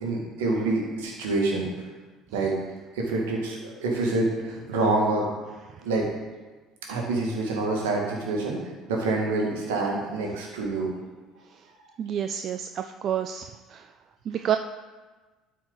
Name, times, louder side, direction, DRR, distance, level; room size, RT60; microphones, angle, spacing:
voice 1, 0.0-1.6 2.3-2.6 2.9-5.3 5.8-6.1 6.9-8.6 8.9-10.9, right 2 dB, 75° right, -1 dB, 1.8 m, -26 dB
voice 2, 12.0-13.9 14.3-14.6, right 9 dB, 50° right, 8 dB, 0.3 m, -29 dB
12.0 x 4.7 x 3.9 m, 1.3 s
hypercardioid pair, 60°, 0 cm